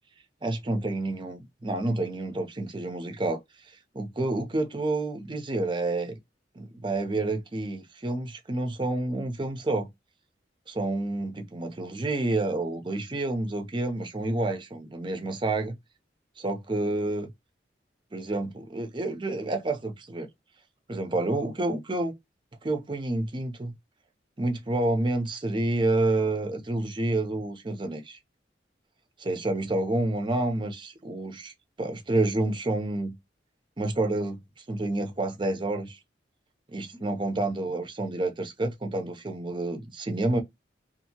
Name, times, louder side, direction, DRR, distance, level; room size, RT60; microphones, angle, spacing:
voice 1, 0.4-3.4 3.9-6.2 6.6-9.9 10.7-15.8 16.4-17.3 18.1-20.3 20.9-22.1 22.6-23.7 24.4-28.2 29.2-31.5 31.8-33.1 33.8-34.4 34.7-36.0 36.7-40.4, right 2 dB, 25° right, 0.6 m, -29 dB
2.7 x 2.5 x 2.7 m
head